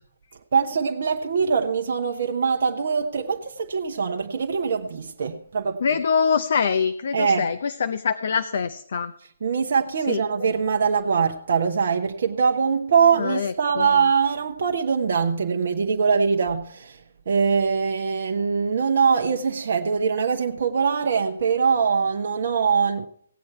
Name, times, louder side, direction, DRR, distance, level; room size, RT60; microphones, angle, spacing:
voice 1, 0.5-5.8 7.1-7.5 9.4-17.0 17.3-23.1, right 6 dB, 50° right, 3 dB, 1.0 m, -22 dB
voice 2, 5.8-9.1 10.1-10.2 13.2-13.9, left 6 dB, 55° left, 11 dB, 0.7 m, -24 dB
17.5 x 8.7 x 4.5 m, 0.66 s
figure-of-eight pair, 135°, 0 cm